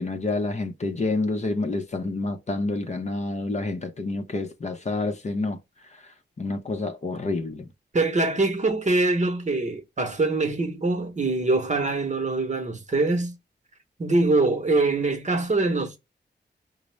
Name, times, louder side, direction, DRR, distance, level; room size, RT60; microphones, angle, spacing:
voice 1, 0.0-5.6 6.4-7.6, left 2 dB, 40° left, 0.6 m, -28 dB
voice 2, 7.9-13.3 14.0-16.0, right 2 dB, 40° right, 0.9 m, -23 dB
5.1 x 2.0 x 3.2 m
wide cardioid pair, 115°, 19 cm